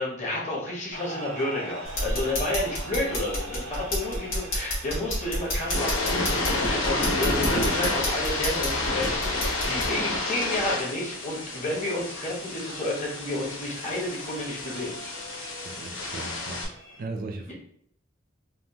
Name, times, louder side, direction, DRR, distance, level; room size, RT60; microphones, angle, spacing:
voice 1, 0.0-15.0, left 1 dB, 35° left, -4 dB, 1.3 m, -31 dB
sound 1, 0.9-17.0, right 2 dB, 80° right, 0.7 m, -43 dB
sound 2, 1.8-9.9, left 1 dB, 85° left, 1.5 m, -31 dB
sound 3, 5.5-16.6, left 2 dB, 70° left, 0.7 m, -30 dB
voice 2, 15.6-16.7 17.0-17.5, right 3 dB, 45° right, 4 dB, 0.4 m, -37 dB
3.4 x 2.5 x 2.8 m, 0.67 s
head